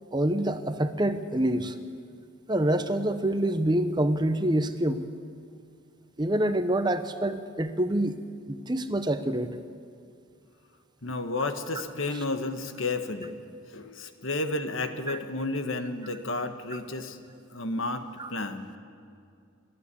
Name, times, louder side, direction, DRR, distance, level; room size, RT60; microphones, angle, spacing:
voice 1, 0.1-1.7 2.5-5.0 6.2-8.2 8.5-9.5 15.1-15.2 18.2-18.3, right 1 dB, 20° right, 10 dB, 0.7 m, -26 dB
voice 2, 11.0-13.4 13.7-17.2 17.5-18.0 18.3-18.7, left 2 dB, 75° left, 7 dB, 1.5 m, -31 dB
29.5 x 12.0 x 8.5 m, 2.3 s
head